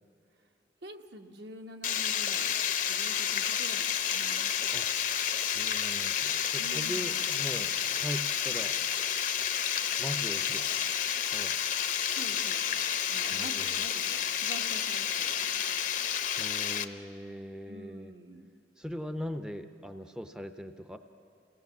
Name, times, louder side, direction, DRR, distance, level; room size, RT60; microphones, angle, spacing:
voice 1, 0.8-2.6 2.9-4.6 6.6-7.3 12.1-15.8 17.7-18.6, right 1 dB, 65° right, 4 dB, 1.3 m, -47 dB
Water, 1.8-16.8, left 9 dB, 45° left, 0.8 m, -30 dB
voice 2, 5.4-8.8 10.0-10.7 11.2-11.6 13.3-13.9 16.4-18.1 18.8-21.0, equal, 5° right, 8 dB, 0.6 m, -40 dB
28.5 x 18.0 x 7.2 m, 2.6 s
head